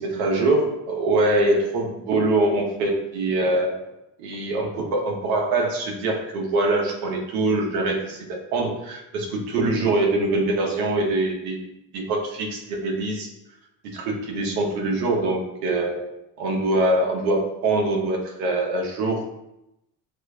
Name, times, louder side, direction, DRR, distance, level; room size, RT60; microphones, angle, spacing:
voice 1, 0.0-3.8 4.2-13.3 13.8-16.0 16.4-19.2, right 2 dB, 85° right, 1 dB, 1.1 m, -23 dB
7.6 x 2.6 x 2.3 m, 0.86 s
supercardioid pair, 85°, 41 cm